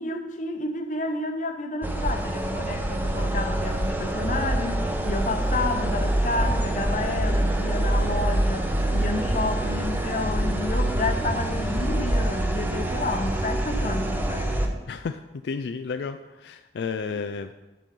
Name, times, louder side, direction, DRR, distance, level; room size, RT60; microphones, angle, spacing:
voice 1, 0.0-14.8 17.1-17.2, left 2 dB, 45° left, 5 dB, 0.9 m, -30 dB
sound 1, 1.8-14.7, right 1 dB, 10° right, 0.6 m, -25 dB
voice 2, 15.4-16.2 16.4-17.5, left 5 dB, 75° left, 9 dB, 0.3 m, -31 dB
10.0 x 5.4 x 5.3 m, 1.1 s
head